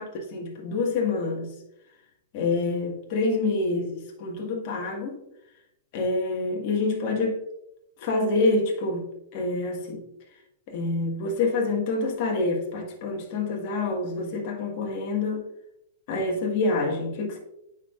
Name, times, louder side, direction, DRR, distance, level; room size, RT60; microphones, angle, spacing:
voice 1, 0.3-1.5 2.3-5.2 5.9-7.4 8.0-10.0 10.7-15.5 16.1-17.4, left 3 dB, 50° left, 1 dB, 1.6 m, -27 dB
9.0 x 4.6 x 2.4 m, 0.83 s
hypercardioid pair, 130°, 0 cm